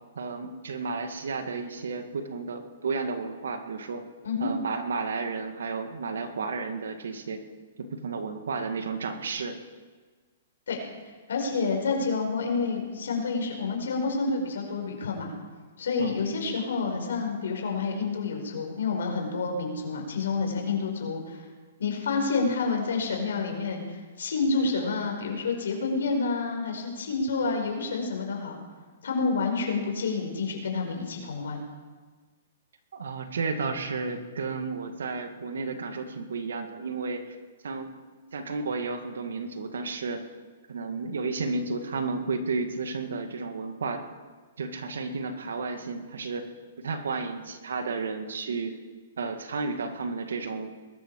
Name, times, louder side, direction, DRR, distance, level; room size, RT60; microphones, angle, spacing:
voice 1, 0.2-4.0 4.4-7.4 7.8-9.5 16.0-16.2 32.9-37.2 37.6-38.0 38.3-40.2 40.7-44.0 44.6-46.4 46.8-48.8 49.2-50.7, right 4 dB, 85° right, 6 dB, 2.2 m, -32 dB
voice 2, 11.3-15.3 15.8-21.4 21.8-28.6 29.0-31.6, left 4 dB, 80° left, 2 dB, 4.9 m, -29 dB
21.0 x 13.0 x 4.9 m, 1.4 s
hypercardioid pair, 140°, 0 cm